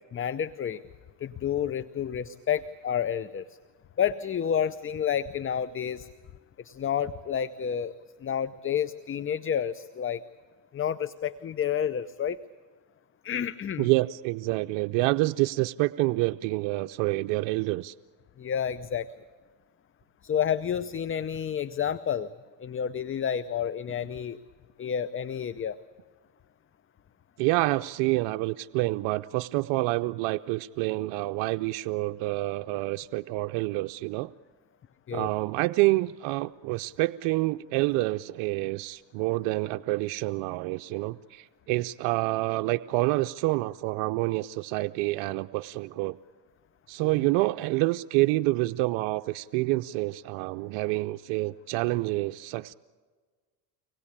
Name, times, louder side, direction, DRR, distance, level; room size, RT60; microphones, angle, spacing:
voice 1, 0.1-0.8 1.2-3.4 4.0-6.1 6.6-8.0 8.2-10.2 10.7-12.4 13.2-13.9 18.4-19.1 20.2-22.3 22.6-24.4 24.8-25.8 35.1-35.3, left 8 dB, 25° left, 15 dB, 0.6 m, -30 dB
voice 2, 13.8-17.9 27.4-34.3 35.1-46.2 46.9-52.7, right 20 dB, 70° right, 10 dB, 0.6 m, -27 dB
24.5 x 19.5 x 8.6 m, 1.5 s
supercardioid pair, 80°, 48 cm